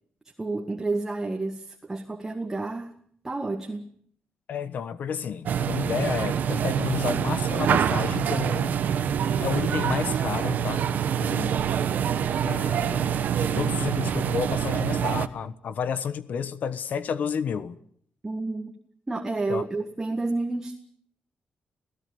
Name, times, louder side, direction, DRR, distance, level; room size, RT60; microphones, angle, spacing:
voice 1, 0.4-2.9 3.2-3.9 18.2-18.7 19.1-20.8, right 3 dB, 15° right, 1.8 m, -30 dB
voice 2, 4.5-8.8 9.4-10.8 11.2-11.6 12.4-13.1 13.4-17.8 19.5-19.6, left 7 dB, 65° left, 1.2 m, -31 dB
sound 1, 5.5-15.3, right 8 dB, 70° right, 1.2 m, -25 dB
28.5 x 16.5 x 7.0 m
cardioid pair, 130°, 3 cm